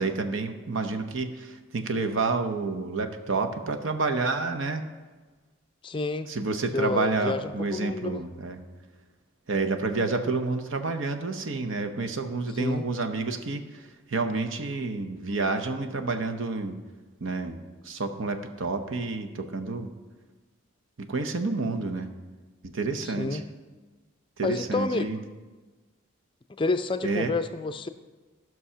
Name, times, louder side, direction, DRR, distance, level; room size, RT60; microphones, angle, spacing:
voice 1, 0.0-4.8 6.3-8.6 9.5-16.7 17.2-17.6 17.8-19.9 21.0-22.1 22.6-23.4 24.4-25.2 27.0-27.3, right 3 dB, 70° right, 7 dB, 0.8 m, -29 dB
voice 2, 5.8-6.3 6.7-8.2 12.5-12.9 23.0-23.4 24.4-25.1 26.6-27.9, left 3 dB, 25° left, 10 dB, 0.4 m, -29 dB
14.0 x 6.2 x 5.6 m, 1.3 s
head